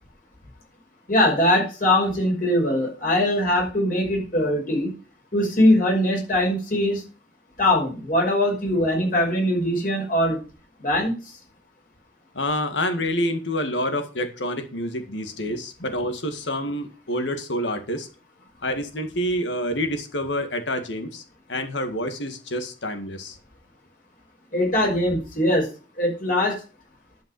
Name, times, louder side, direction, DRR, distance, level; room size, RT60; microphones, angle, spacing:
voice 1, 1.1-4.9 5.3-7.0 7.6-10.4 10.8-11.4 24.5-25.7 26.0-26.6, left 1 dB, 50° left, -1 dB, 5.8 m, -21 dB
voice 2, 12.3-18.1 18.6-21.2 21.5-23.4, left 1 dB, 85° left, 7 dB, 2.0 m, -27 dB
11.5 x 5.5 x 7.7 m, 0.35 s
head